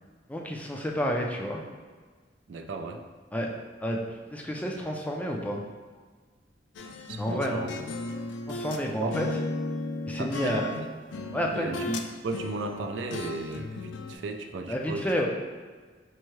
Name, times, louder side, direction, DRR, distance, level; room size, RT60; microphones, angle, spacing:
voice 1, 0.3-1.6 3.3-3.5 3.8-4.0 4.3-5.6 7.2-7.6 8.5-9.3 10.1-10.7 11.3-12.0 14.7-15.3, equal, 10° left, 0 dB, 0.3 m, -30 dB
voice 2, 2.5-3.0 7.1-7.9 9.0-9.5 10.2-10.9 11.5-11.8 12.2-15.3, right 3 dB, 80° right, 5 dB, 0.4 m, -35 dB
sound 1, 6.8-8.8 9.1-12.1 12.3-14.2, left 3 dB, 85° left, 0.3 m, -35 dB
4.6 x 2.7 x 3.0 m, 1.5 s
head